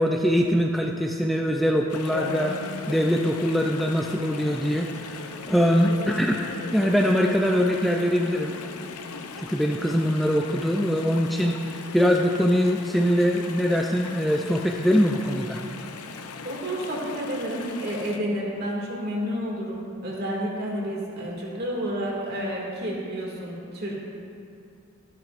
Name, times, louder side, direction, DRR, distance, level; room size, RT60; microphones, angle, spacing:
voice 1, 0.0-6.5 6.7-8.5 9.5-11.6 11.9-15.6, equal, ahead, 0 dB, 0.3 m, -23 dB
Chatter / Stream, 1.9-18.2, left 4 dB, 90° left, 0.6 m, -38 dB
voice 2, 16.4-23.9, equal, 45° right, -3 dB, 2.2 m, -30 dB
13.5 x 13.0 x 2.5 m, 2.5 s
head